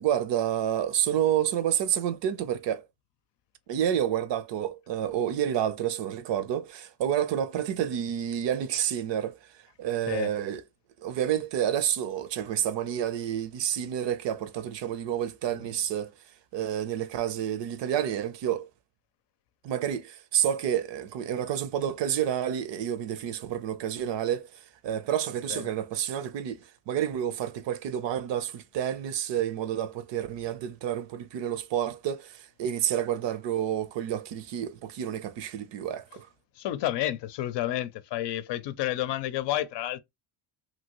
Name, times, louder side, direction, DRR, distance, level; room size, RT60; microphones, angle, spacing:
voice 1, 0.0-2.8 3.7-9.4 9.8-10.6 11.0-16.1 16.5-18.7 19.6-36.3, right 10 dB, 65° right, 0.7 m, -29 dB
voice 2, 36.5-40.0, left 13 dB, 60° left, 0.6 m, -30 dB
2.9 x 2.7 x 2.9 m
cardioid pair, 85°, 48 cm